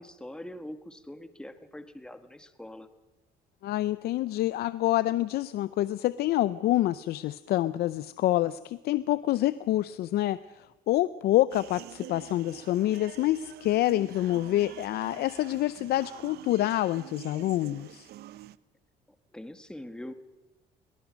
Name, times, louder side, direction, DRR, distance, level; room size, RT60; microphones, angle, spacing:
voice 1, 0.0-2.9 19.3-20.1, left 1 dB, 5° left, 9 dB, 1.4 m, -43 dB
voice 2, 3.6-18.1, left 14 dB, 70° left, 15 dB, 0.6 m, -27 dB
sound 1, 11.5-18.6, right 14 dB, 70° right, 0.7 m, -47 dB
22.0 x 19.0 x 6.3 m, 1.1 s
cardioid pair, 110°, 17 cm